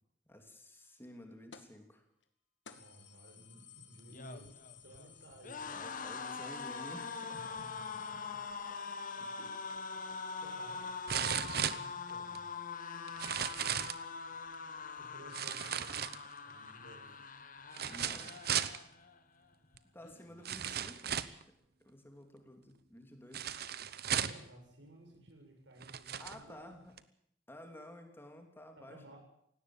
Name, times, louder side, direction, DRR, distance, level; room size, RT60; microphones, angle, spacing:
voice 1, 0.3-2.0 5.7-7.3 9.2-9.4 17.8-18.4 19.9-21.2 21.5-23.5 26.2-26.9 27.5-29.0, left 1 dB, 10° left, 5 dB, 2.9 m, -52 dB
sound 1, 1.5-1.8 2.2-2.3 2.6-8.1, left 7 dB, 75° left, 2.2 m, -58 dB
voice 2, 2.7-4.5 4.8-6.0 7.3-8.4 9.9-10.0 10.4-11.3 11.7-12.4 14.9-16.0 16.4-17.2 18.9-19.0 20.3-20.5 24.1-26.9 28.8-29.2, right 1 dB, 85° right, 2 dB, 7.3 m, -56 dB
sound 2, 4.0-19.2 19.5-19.8 20.0-20.8, left 5 dB, 50° left, 1.6 m, -43 dB
sound 3, 9.7-9.8 11.1-12.4 13.1-14.0 15.3-16.5 17.7-18.8 19.8-19.9 20.4-21.4 23.3-24.5 25.3-25.4 25.8-26.4 27.0-27.1, right 9 dB, 60° right, 1.0 m, -36 dB
18.0 x 17.5 x 8.9 m, 0.73 s
head